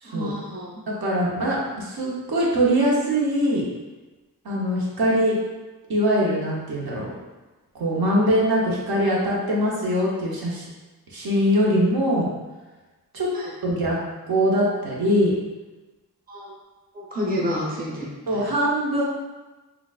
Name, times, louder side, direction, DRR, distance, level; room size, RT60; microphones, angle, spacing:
voice 1, 0.0-0.8 13.3-13.4 16.3-16.5 16.9-18.1, left 1 dB, 25° right, -4 dB, 0.8 m, -29 dB
voice 2, 0.9-3.6 4.4-5.4 5.9-7.1 7.7-10.7 11.1-12.3 13.1-13.3 13.6-14.0 14.3-15.3 18.3-19.0, equal, 75° right, -4 dB, 0.9 m, -22 dB
3.8 x 2.4 x 2.4 m, 1.2 s
cardioid pair, 55°, 37 cm